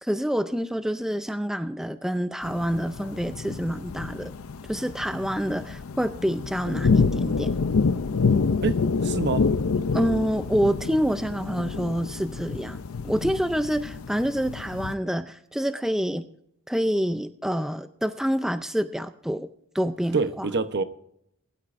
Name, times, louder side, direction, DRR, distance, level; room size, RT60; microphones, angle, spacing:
voice 1, 0.0-4.3 4.7-7.5 9.9-12.8 13.0-16.3 16.7-19.5 19.7-20.5, equal, ahead, 0.4 m, -27 dB
sound 1, 2.4-14.9, left 4 dB, 75° left, 0.6 m, -27 dB
voice 2, 9.0-9.5 20.1-20.8, right 4 dB, 55° right, 0.9 m, -25 dB
21.0 x 12.0 x 2.6 m
head